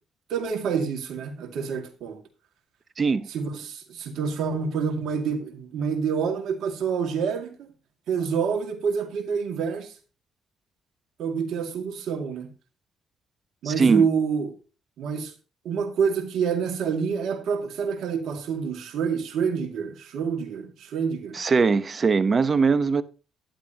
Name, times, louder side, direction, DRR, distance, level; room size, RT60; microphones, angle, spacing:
voice 1, 0.3-2.2 3.3-7.7 8.1-9.9 11.2-12.5 13.6-14.5 15.0-15.3 15.6-21.4, right 6 dB, 70° right, 2.2 m, -27 dB
voice 2, 3.0-3.3 13.6-14.1 21.3-23.0, right 4 dB, 40° right, 0.9 m, -21 dB
11.5 x 10.5 x 2.9 m
supercardioid pair, 60°, 0 cm